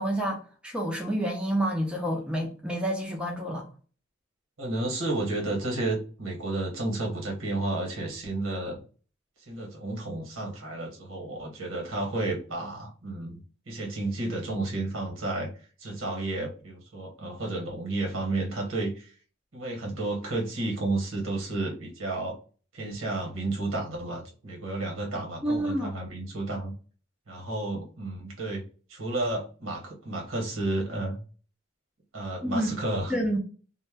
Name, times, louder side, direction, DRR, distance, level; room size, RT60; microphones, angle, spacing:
voice 1, 0.0-3.7 25.1-26.0 32.4-32.7 33.1-33.4, right 1 dB, 5° right, 0.4 m, -29 dB
voice 2, 4.6-8.7 9.4-13.4 13.7-15.5 15.8-19.1 19.5-22.4 22.7-26.7 27.3-28.6 28.9-31.2 32.1-33.1, right 2 dB, 85° right, 1.0 m, -32 dB
2.1 x 2.1 x 3.3 m
head